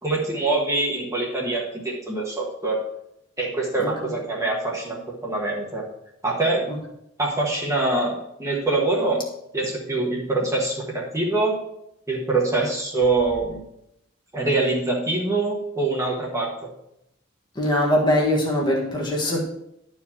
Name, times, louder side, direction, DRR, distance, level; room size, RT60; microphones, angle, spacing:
voice 1, 0.0-2.8 3.4-5.8 6.2-6.7 7.2-9.3 9.5-11.6 12.1-13.6 14.3-16.7, right 2 dB, 15° right, -3 dB, 1.4 m, -24 dB
voice 2, 17.5-19.4, left 1 dB, 20° left, -2 dB, 1.5 m, -22 dB
11.5 x 4.7 x 4.3 m, 0.79 s
head